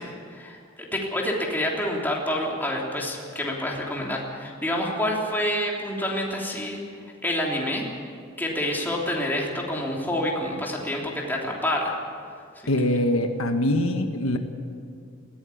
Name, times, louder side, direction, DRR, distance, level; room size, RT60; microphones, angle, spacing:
voice 1, 0.0-6.8 7.2-7.8 8.4-11.9, left 1 dB, 10° left, -2 dB, 3.4 m, -28 dB
voice 2, 12.7-14.4, left 1 dB, 75° left, 6 dB, 1.5 m, -23 dB
20.5 x 16.5 x 8.6 m, 2.2 s
head